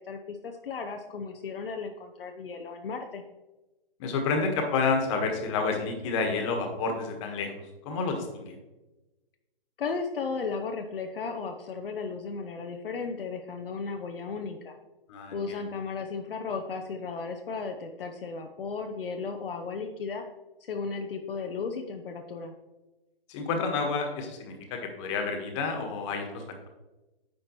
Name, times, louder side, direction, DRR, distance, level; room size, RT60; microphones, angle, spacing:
voice 1, 0.1-3.2 9.8-14.7 15.3-20.2 20.7-22.5, left 5 dB, 65° left, 4 dB, 0.8 m, -35 dB
voice 2, 4.0-8.5 15.1-15.6 23.3-26.7, left 4 dB, 30° left, 3 dB, 1.5 m, -30 dB
9.7 x 5.8 x 3.1 m, 1.1 s
hypercardioid pair, 140°, 30 cm